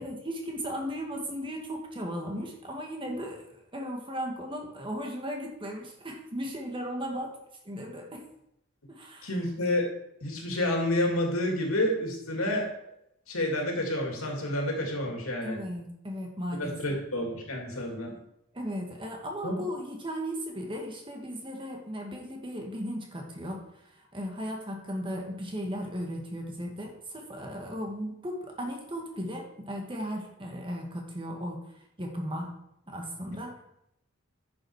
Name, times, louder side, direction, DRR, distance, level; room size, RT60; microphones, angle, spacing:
voice 1, 0.0-7.3 7.7-8.2 8.9-9.3 15.4-17.0 18.5-23.7 24.0-31.6 32.0-32.5 32.9-33.6, equal, 25° right, 1 dB, 1.7 m, -36 dB
voice 2, 9.2-9.9 10.2-12.7 13.3-15.6 16.6-18.1 19.4-19.5, left 1 dB, 90° left, 0 dB, 2.7 m, -29 dB
10.5 x 7.0 x 4.8 m, 0.79 s
head